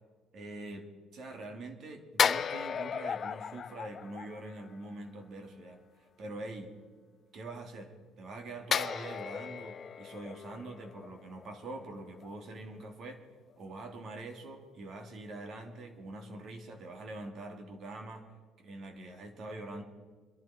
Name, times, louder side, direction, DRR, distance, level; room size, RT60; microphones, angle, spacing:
voice 1, 0.3-0.9 1.1-6.7 7.3-13.2 13.6-18.3 18.6-19.8, right 2 dB, 55° right, 4 dB, 2.6 m, -44 dB
sound 1, 2.2-4.9 8.7-11.9 12.2-12.4, left 7 dB, 40° left, 0.3 m, -34 dB
25.5 x 11.5 x 4.4 m, 1.5 s
cardioid pair, 100°, 0 cm